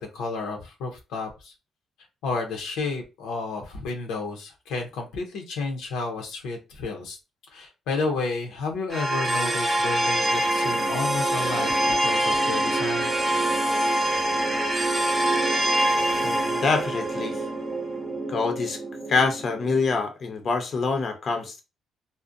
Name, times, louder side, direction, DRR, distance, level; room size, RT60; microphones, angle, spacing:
voice 1, 0.0-1.5 2.2-7.2 7.5-13.1, left 3 dB, 90° left, 0.6 m, -31 dB
sound 1, 8.9-20.0, right 1 dB, 10° right, 0.6 m, -25 dB
voice 2, 16.2-17.4 18.3-18.8 19.1-21.6, left 4 dB, 50° left, 0.6 m, -25 dB
2.5 x 2.0 x 2.5 m
cardioid pair, 90°, 0 cm